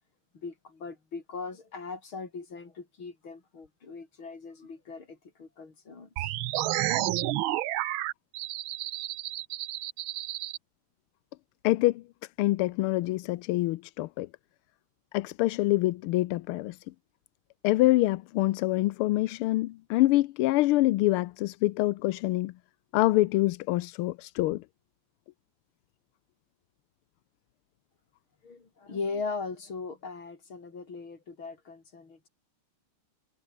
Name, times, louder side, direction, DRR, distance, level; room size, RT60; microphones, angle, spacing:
voice 1, 0.3-6.3 28.4-32.3, left 4 dB, 70° left, 4.8 m, -39 dB
sound 1, 6.2-10.6, right 15 dB, 75° right, 1.5 m, -31 dB
voice 2, 11.6-12.0 12.4-14.3 15.1-16.8 17.6-22.5 22.9-24.6, left 17 dB, 85° left, 1.5 m, -25 dB
omnidirectional pair, 2.3 m